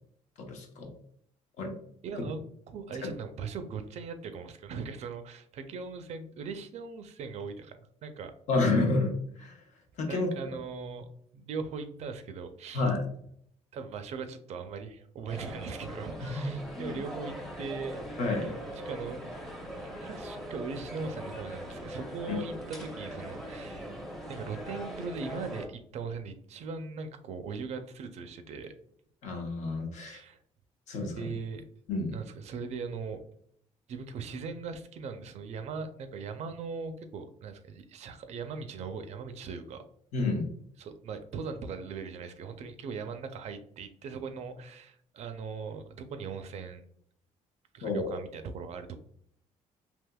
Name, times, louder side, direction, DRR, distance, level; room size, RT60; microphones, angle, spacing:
voice 1, 0.4-0.9 1.6-1.8 3.0-3.1 8.5-9.6 10.0-10.3 12.7-13.1 16.3-16.4 16.8-17.0 18.2-18.5 22.3-22.4 29.2-30.2 30.9-31.3 31.9-32.2 40.1-40.5 47.8-48.1, left 3 dB, 70° left, 3 dB, 0.8 m, -29 dB
voice 2, 2.0-2.4 2.7-8.3 10.1-11.1 11.3-12.9 13.7-18.5 18.9-19.3 19.7-23.9 24.3-28.7 30.0-30.4 31.1-31.6 32.1-33.2 33.9-39.8 40.8-46.8 47.7-49.0, right 5 dB, 60° right, 8 dB, 0.4 m, -39 dB
sound 1, 15.3-25.7, equal, ahead, 0.6 m, -41 dB
3.4 x 2.9 x 2.2 m, 0.65 s
cardioid pair, 110°, 13 cm